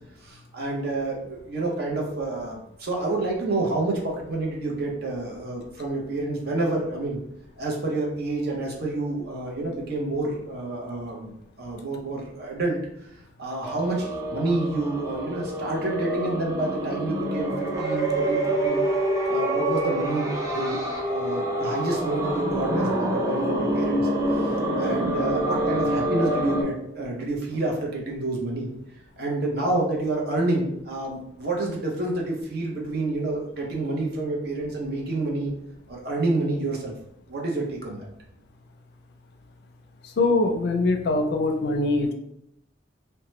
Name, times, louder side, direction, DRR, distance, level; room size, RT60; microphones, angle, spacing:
voice 1, 0.2-7.2 7.6-11.3 11.6-12.8 13.4-18.8 19.3-28.7 29.2-35.5 35.9-36.9 37.3-38.1, right 2 dB, 55° right, -1 dB, 0.7 m, -28 dB
sound 1, 13.6-26.6, right 1 dB, 20° right, 0.5 m, -26 dB
voice 2, 40.2-42.1, left 2 dB, 60° left, 3 dB, 0.4 m, -22 dB
2.9 x 2.2 x 3.0 m, 0.77 s
head